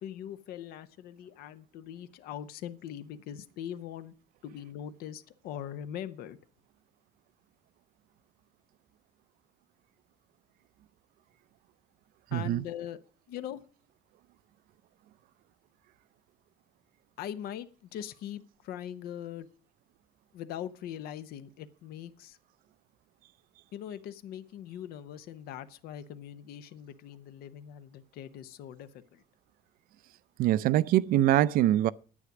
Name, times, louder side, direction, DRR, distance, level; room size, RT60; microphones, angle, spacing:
voice 1, 0.0-4.1 4.4-6.4 12.3-13.0 13.3-13.6 17.2-19.5 20.3-22.4 23.7-29.2, left 10 dB, 70° left, 0.9 m, -41 dB
voice 2, 12.3-12.6 30.4-31.9, right 13 dB, 60° right, 0.5 m, -23 dB
9.8 x 9.5 x 6.0 m
cardioid pair, 165°, 16 cm